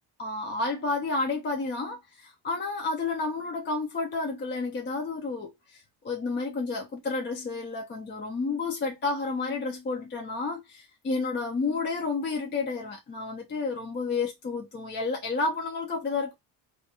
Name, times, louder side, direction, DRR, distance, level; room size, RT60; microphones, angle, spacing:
voice 1, 0.2-16.3, left 3 dB, 25° left, 0.4 m, -31 dB
2.3 x 2.2 x 2.7 m
cardioid pair, 135°, 42 cm